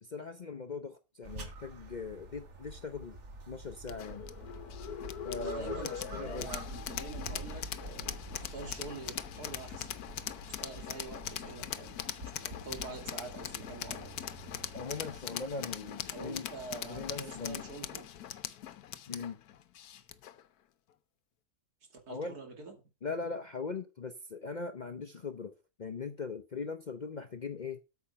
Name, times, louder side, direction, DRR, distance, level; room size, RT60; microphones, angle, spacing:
voice 1, 0.0-3.2 3.5-4.3 5.2-6.5 14.7-16.5 16.9-17.6 19.1-19.4 22.1-22.4 23.0-27.8, left 4 dB, 45° left, 0.6 m, -40 dB
sound 1, 1.2-15.2, right 1 dB, 50° right, 1.8 m, -47 dB
sound 2, 3.9-20.4, left 10 dB, 80° left, 1.3 m, -41 dB
voice 2, 5.4-9.9 10.6-12.0 12.3-14.2 16.1-18.1 21.9-22.8, right 3 dB, 85° right, 3.0 m, -46 dB
8.7 x 6.9 x 5.6 m
omnidirectional pair, 1.6 m